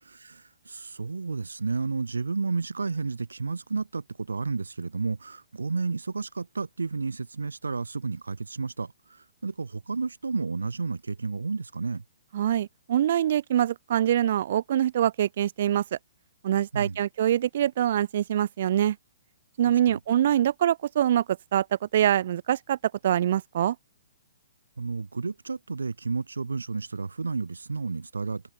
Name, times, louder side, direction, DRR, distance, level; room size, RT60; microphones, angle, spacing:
voice 1, 0.1-12.0 16.7-17.0 19.7-20.0 24.8-28.4, right 4 dB, 85° right, 1.4 m, -32 dB
voice 2, 12.3-16.0 16.4-19.0 19.6-21.7 21.9-22.8 23.0-23.8, right 11 dB, 55° right, 0.6 m, -24 dB
open air
hypercardioid pair, 130°, 0 cm